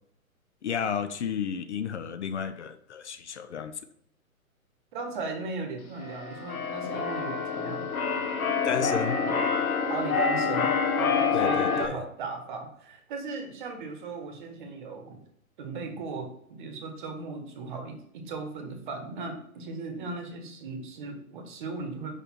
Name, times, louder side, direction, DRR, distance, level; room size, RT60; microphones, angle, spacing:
voice 1, 0.6-3.8 8.6-9.2 11.3-12.0, left 7 dB, 55° left, 0.5 m, -32 dB
voice 2, 4.9-7.9 9.2-9.5 9.9-15.2 15.6-22.2, right 3 dB, 35° right, 1.0 m, -37 dB
Keyboard (musical), 6.0-11.9, left 5 dB, 75° left, 0.9 m, -27 dB
5.3 x 4.1 x 4.3 m
figure-of-eight pair, 130°, 43 cm